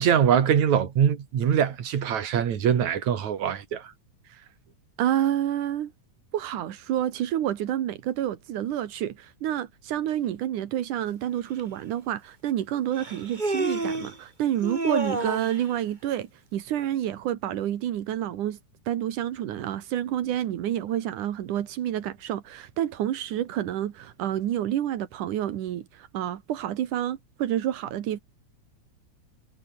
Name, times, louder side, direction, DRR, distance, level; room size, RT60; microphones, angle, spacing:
voice 1, 0.0-3.9, right 8 dB, 70° right, 3.6 m, -23 dB
voice 2, 5.0-5.9 6.3-18.6 18.9-28.2, right 11 dB, 90° right, 3.0 m, -29 dB
Human voice, 11.6-11.7 13.0-14.2 14.6-15.6, right 2 dB, 15° right, 2.2 m, -29 dB
omnidirectional pair, 3.5 m